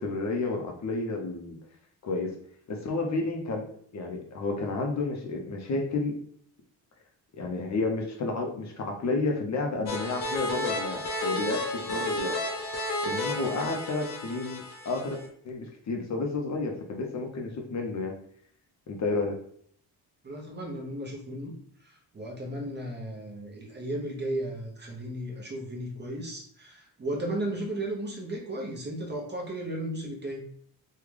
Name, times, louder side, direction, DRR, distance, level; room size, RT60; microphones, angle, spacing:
voice 1, 0.0-1.6 2.0-2.4 2.7-3.7 3.9-6.2 7.4-12.5 13.0-18.2 18.9-19.4, left 3 dB, 45° left, 1 dB, 0.6 m, -31 dB
sound 1, 9.9-15.3, left 1 dB, 70° left, 1.0 m, -32 dB
voice 2, 20.2-21.6 21.8-30.4, right 1 dB, 25° right, -1 dB, 0.7 m, -35 dB
3.6 x 2.2 x 3.2 m, 0.62 s
wide cardioid pair, 145°, 39 cm